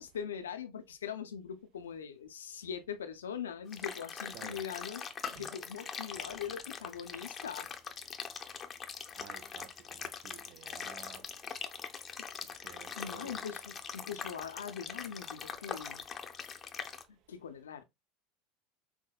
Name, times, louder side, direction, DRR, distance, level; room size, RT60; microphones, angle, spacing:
voice 1, 0.0-7.7 10.7-10.9 13.0-16.0 17.1-17.8, left 8 dB, 80° left, 0.5 m, -42 dB
sound 1, 3.7-17.0, left 6 dB, 30° left, 0.6 m, -42 dB
voice 2, 9.2-11.2 12.6-13.4, right 12 dB, 50° right, 0.6 m, -52 dB
5.7 x 2.1 x 2.3 m
figure-of-eight pair, 75°, 0 cm